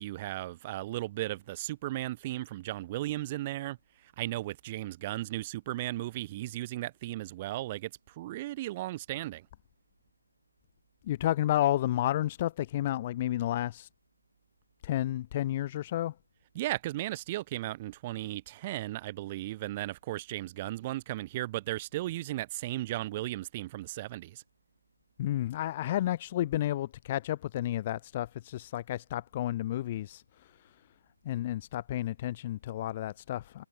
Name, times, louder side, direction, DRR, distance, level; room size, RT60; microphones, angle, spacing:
voice 1, 0.0-3.8 4.0-9.5 16.5-24.4, right 16 dB, 20° right, 2.9 m, -36 dB
voice 2, 11.1-13.9 14.8-16.1 25.2-30.2 31.2-33.6, left 13 dB, 25° left, 1.1 m, -31 dB
figure-of-eight pair, 155°, 0 cm